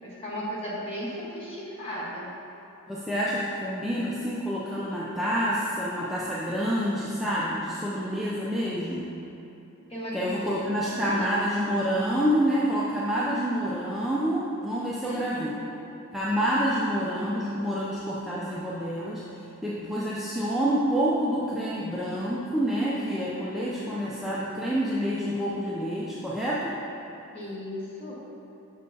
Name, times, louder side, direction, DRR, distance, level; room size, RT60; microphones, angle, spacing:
voice 1, 0.0-2.3 9.9-10.5 10.8-11.5 15.0-15.9 27.3-28.2, equal, 25° left, -7 dB, 1.3 m, -36 dB
voice 2, 2.9-9.1 10.1-15.6 16.1-19.2 19.6-26.7, equal, ahead, -8 dB, 0.4 m, -28 dB
6.4 x 6.4 x 2.7 m, 3.0 s
head